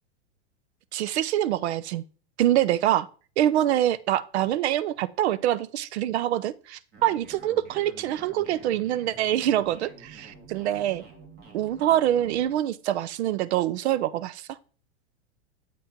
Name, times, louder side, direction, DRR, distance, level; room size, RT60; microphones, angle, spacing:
voice 1, 0.9-2.0 2.4-3.1 3.4-11.0 11.5-14.6, right 12 dB, 70° right, 0.5 m, -25 dB
sound 1, 6.9-12.6, right 4 dB, 30° right, 1.7 m, -49 dB
7.5 x 4.3 x 3.6 m
hypercardioid pair, 115°, 34 cm